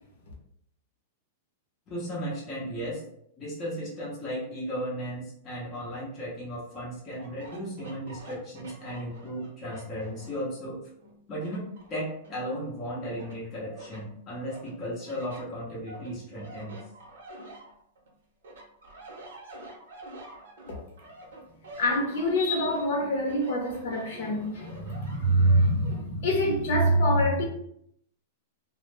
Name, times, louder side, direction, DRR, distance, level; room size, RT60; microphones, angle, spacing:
voice 1, 1.9-3.0 3.4-10.9 11.3-16.8, equal, 15° left, 0.5 m, -35 dB
sound 1, 7.1-10.5 11.0-12.8 13.2-14.0 14.5-18.1 18.4-26.0, right 1 dB, 90° right, 0.7 m, -48 dB
voice 2, 21.8-27.5, equal, 55° left, 0.7 m, -25 dB
2.1 x 2.0 x 3.0 m
supercardioid pair, 180°, 0 cm